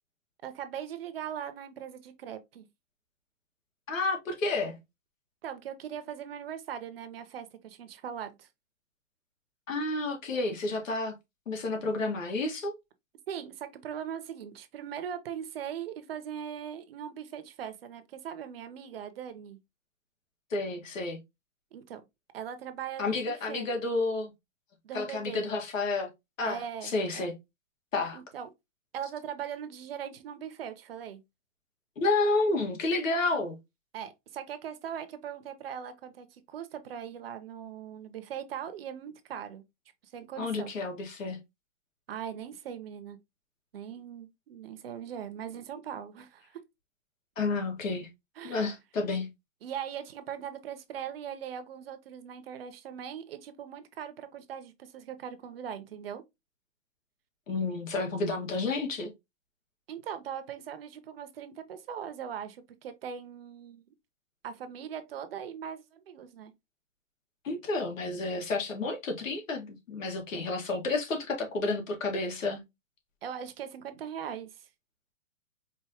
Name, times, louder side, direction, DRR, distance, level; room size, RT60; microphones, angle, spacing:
voice 1, 0.4-2.7 5.4-8.5 13.3-19.6 21.7-22.0 22.3-23.7 24.8-25.4 26.4-27.3 28.1-28.5 28.9-31.2 33.9-39.6 40.1-40.7 42.1-43.2 43.7-46.6 48.4-48.7 49.6-56.2 59.9-63.8 64.4-66.5 73.2-74.7, right 8 dB, 50° right, 0.7 m, -40 dB
voice 2, 3.9-4.8 9.7-11.1 11.5-12.8 20.5-21.2 23.0-24.3 24.9-26.1 26.4-27.3 27.9-28.2 32.0-33.6 40.4-41.4 47.4-48.1 48.4-49.3 57.5-59.1 67.4-72.6, left 3 dB, 85° left, 1.8 m, -30 dB
4.6 x 2.7 x 2.8 m
hypercardioid pair, 160°, 38 cm